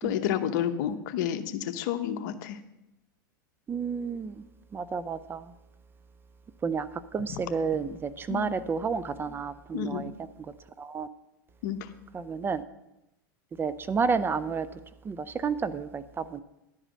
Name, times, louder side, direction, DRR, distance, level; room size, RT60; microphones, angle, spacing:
voice 1, 0.0-2.6 7.3-7.4 8.3-8.5 9.7-10.0 11.6-11.9, left 10 dB, 65° left, 10 dB, 0.9 m, -30 dB
voice 2, 3.7-4.4 4.7-5.5 6.6-6.9 7.1-10.1 10.8-11.1 12.1-12.6 13.6-14.7 15.1-16.4, right 5 dB, 20° right, 14 dB, 0.4 m, -30 dB
11.0 x 5.0 x 7.6 m, 0.89 s
hypercardioid pair, 110°, 11 cm